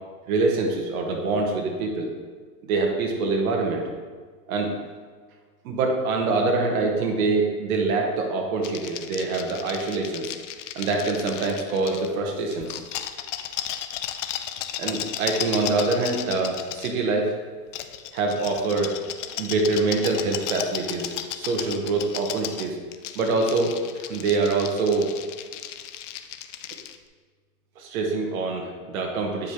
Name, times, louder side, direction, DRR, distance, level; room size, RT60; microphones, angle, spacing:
voice 1, 0.3-2.1 2.6-3.8 4.5-4.7 5.6-10.3 10.7-12.8 14.8-17.3 18.1-18.9 19.4-22.8 23.1-25.1 27.8-29.5, right 3 dB, 60° right, 1 dB, 1.2 m, -25 dB
sound 1, 8.6-12.1 12.5-16.9 17.7-27.0, left 11 dB, 50° left, 0.5 m, -34 dB
8.5 x 5.0 x 2.9 m, 1.6 s
hypercardioid pair, 120°, 48 cm